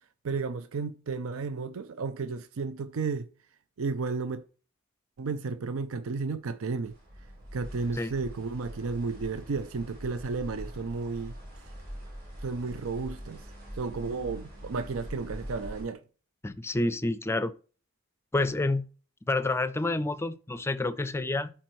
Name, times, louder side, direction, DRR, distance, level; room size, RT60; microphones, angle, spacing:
voice 1, 0.2-3.3 3.8-4.4 5.2-6.9 7.5-11.3 12.4-13.4 13.8-16.0, right 4 dB, 80° right, 0.5 m, -33 dB
sound 1, 6.8-15.8, equal, 50° right, 3.4 m, -43 dB
voice 2, 16.4-17.5 18.3-18.9 19.3-21.5, left 2 dB, 10° left, 0.4 m, -28 dB
11.5 x 4.3 x 3.1 m
head